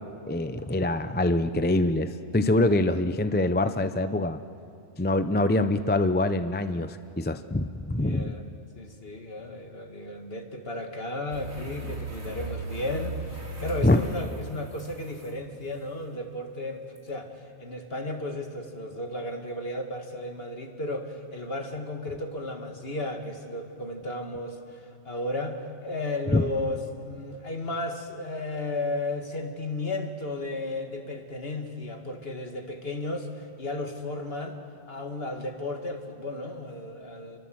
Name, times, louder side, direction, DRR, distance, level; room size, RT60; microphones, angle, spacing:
voice 1, 0.2-4.4 5.0-8.3 13.8-14.0 26.3-26.5, left 2 dB, 10° left, 10 dB, 0.5 m, -24 dB
voice 2, 7.9-8.4 8.7-34.6 34.9-37.4, left 2 dB, 50° left, 4 dB, 2.4 m, -34 dB
sound 1, 11.3-15.3 17.0-17.1, right 2 dB, 85° right, 3.9 m, -37 dB
30.0 x 23.0 x 7.9 m, 2.6 s
omnidirectional pair, 1.3 m